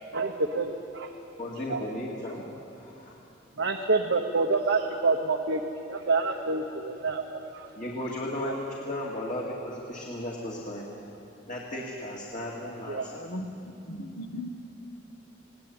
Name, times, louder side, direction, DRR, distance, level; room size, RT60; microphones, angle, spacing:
voice 1, 0.1-1.1 1.7-1.8 3.6-5.6 5.9-7.7 12.9-13.1, right 3 dB, 80° right, 2 dB, 1.1 m, -27 dB
voice 2, 1.4-3.2 7.8-10.9 11.5-13.1, left 1 dB, 40° left, -3 dB, 2.3 m, -35 dB
voice 3, 13.1-14.5, left 1 dB, 65° left, 8 dB, 1.3 m, -38 dB
21.0 x 17.5 x 8.8 m, 2.8 s
head